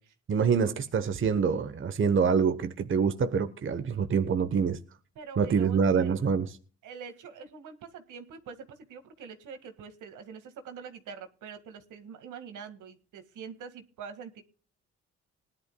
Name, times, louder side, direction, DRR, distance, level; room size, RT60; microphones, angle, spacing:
voice 1, 0.3-4.8 5.4-6.6, right 6 dB, 40° right, 1.1 m, -26 dB
voice 2, 5.2-6.2 6.8-14.4, right 6 dB, 80° right, 2.0 m, -45 dB
19.5 x 11.5 x 2.3 m
cardioid pair, 90°, 30 cm